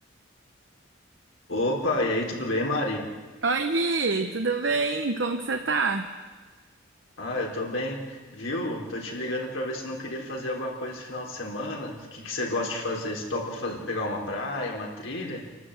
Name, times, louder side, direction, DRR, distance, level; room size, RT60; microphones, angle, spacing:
voice 1, 1.5-3.1 7.2-15.4, left 1 dB, 80° left, -1 dB, 4.1 m, -30 dB
voice 2, 3.4-6.1, right 3 dB, 60° right, 6 dB, 0.9 m, -26 dB
28.0 x 12.0 x 8.1 m, 1.4 s
head